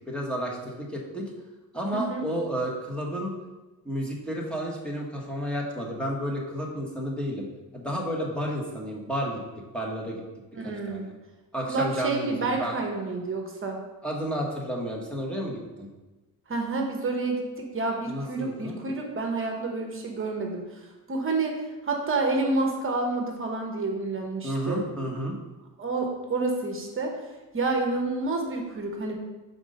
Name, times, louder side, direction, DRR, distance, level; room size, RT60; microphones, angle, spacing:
voice 1, 0.1-1.3 1.7-3.3 3.8-7.5 7.7-9.4 9.7-10.2 10.6-11.1 11.5-12.7 14.0-15.9 18.1-18.8 24.4-25.4, equal, 5° left, -3 dB, 1.1 m, -31 dB
voice 2, 10.5-11.1 11.7-13.8 16.5-20.6 21.1-24.9 25.8-27.1 27.5-29.2, right 3 dB, 35° right, 2 dB, 0.9 m, -29 dB
5.9 x 3.9 x 5.1 m, 1.1 s
cardioid pair, 140°, 36 cm